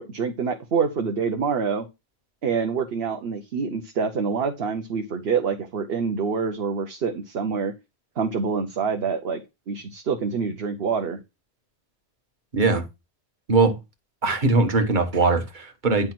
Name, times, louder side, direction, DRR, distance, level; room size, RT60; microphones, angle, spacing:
voice 1, 0.0-1.9 2.4-7.7 8.2-9.4 9.7-11.2, right 5 dB, 70° right, 1.1 m, -26 dB
voice 2, 12.5-12.8 13.5-13.8 14.2-16.1, right 3 dB, 50° right, 1.4 m, -21 dB
10.0 x 3.4 x 6.0 m
omnidirectional pair, 1.1 m